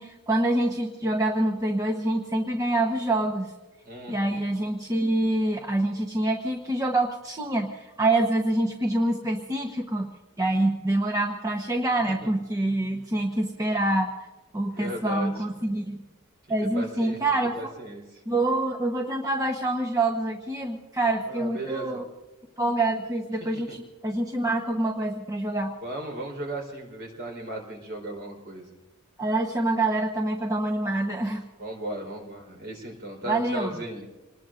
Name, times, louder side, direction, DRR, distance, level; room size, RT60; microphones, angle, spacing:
voice 1, 0.0-3.5 4.1-10.1 10.4-14.1 14.5-16.0 16.5-17.7 18.3-22.0 22.6-25.7 29.2-31.4 33.3-33.8, right 2 dB, 15° right, 1 dB, 1.0 m, -26 dB
voice 2, 3.8-4.4 12.2-12.3 14.7-15.4 16.7-17.2 17.6-18.2 21.3-22.0 23.4-23.8 25.8-28.7 31.0-31.3 31.6-34.1, right 1 dB, 50° right, 1 dB, 4.1 m, -36 dB
27.5 x 20.0 x 2.6 m, 1.1 s
head